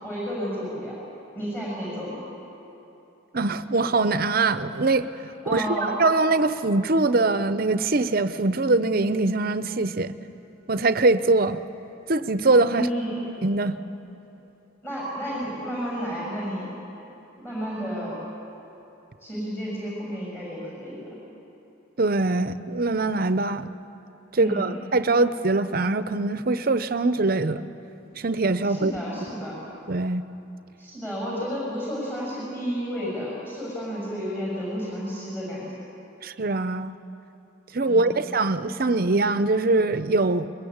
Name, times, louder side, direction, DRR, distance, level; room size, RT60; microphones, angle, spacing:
voice 1, 0.0-0.9 1.3-2.2 5.4-5.9 12.7-13.2 14.8-16.7 17.4-18.2 19.2-21.2 24.3-24.7 28.6-29.6 30.8-35.7 37.8-38.2, equal, 10° left, -5 dB, 6.8 m, -31 dB
voice 2, 3.3-5.1 5.5-10.1 10.7-11.6 12.1-12.9 13.4-13.8 22.0-23.7 24.3-27.6 28.2-28.9 29.9-30.3 36.2-36.9 37.7-40.5, right 3 dB, 50° right, 12 dB, 0.8 m, -22 dB
22.0 x 22.0 x 8.7 m, 3.0 s
head